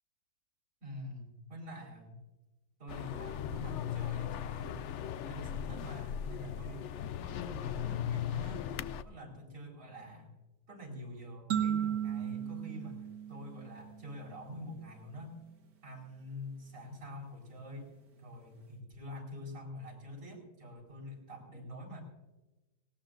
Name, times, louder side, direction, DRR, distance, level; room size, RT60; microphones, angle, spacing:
voice 1, 0.8-2.2 2.8-4.8 5.2-6.9 7.2-8.7 9.0-10.3 10.7-15.4 15.8-17.9 18.2-22.0, left 1 dB, 55° right, -4 dB, 4.9 m, -46 dB
sound 1, 2.9-9.0, left 10 dB, 75° left, 0.6 m, -38 dB
sound 2, 11.5-14.1, right 9 dB, 80° right, 2.1 m, -35 dB
19.0 x 18.5 x 2.6 m, 1.1 s
omnidirectional pair, 1.8 m